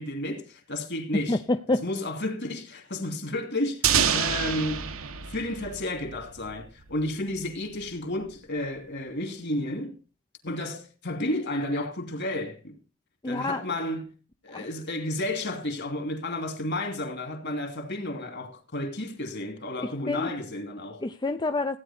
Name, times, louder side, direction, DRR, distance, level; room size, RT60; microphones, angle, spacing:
voice 1, 0.0-1.4 1.8-9.9 10.4-12.8 13.2-14.1 14.4-21.0, left 1 dB, 55° left, 2.7 m, -32 dB
voice 2, 1.3-1.8 13.2-13.6 14.5-14.7 20.1-20.3 21.0-21.8, left 2 dB, 20° left, 0.5 m, -27 dB
sound 1, 3.8-6.6, right 8 dB, 75° right, 1.2 m, -27 dB
16.0 x 9.6 x 4.3 m
head